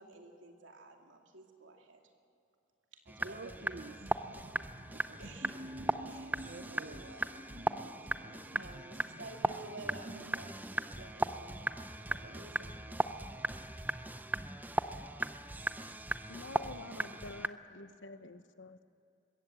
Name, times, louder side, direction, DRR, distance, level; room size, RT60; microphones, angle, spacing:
voice 1, 0.0-2.0 2.9-4.0 4.3-4.7 5.2-5.6 6.1-6.3 6.6-13.0, right 2 dB, 85° right, 2.6 m, -53 dB
sound 1, 3.1-17.5, right 2 dB, 10° right, 0.5 m, -37 dB
voice 2, 3.2-5.9 6.4-7.0 7.5-10.5, right 2 dB, 55° right, 0.8 m, -52 dB
sound 2, 5.4-10.8, right 1 dB, 30° right, 1.3 m, -51 dB
voice 3, 16.3-18.8, left 2 dB, 85° left, 1.0 m, -48 dB
21.5 x 16.5 x 7.6 m
head